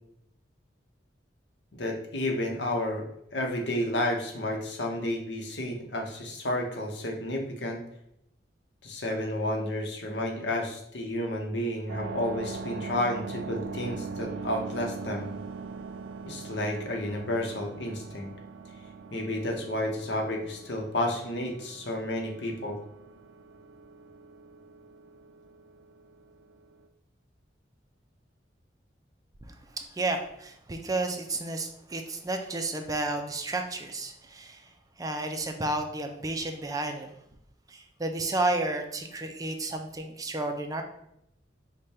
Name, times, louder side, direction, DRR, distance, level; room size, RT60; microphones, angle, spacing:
voice 1, 1.7-3.1 3.3-7.8 8.8-15.3 16.3-18.3 19.1-22.8, left 1 dB, 70° left, 2 dB, 0.9 m, -31 dB
sound 1, 11.9-26.9, right 4 dB, 90° right, 0.4 m, -41 dB
voice 2, 30.0-34.6 35.0-37.1 37.7-40.8, right 2 dB, 20° right, 4 dB, 0.4 m, -31 dB
5.0 x 2.2 x 4.1 m, 0.76 s
head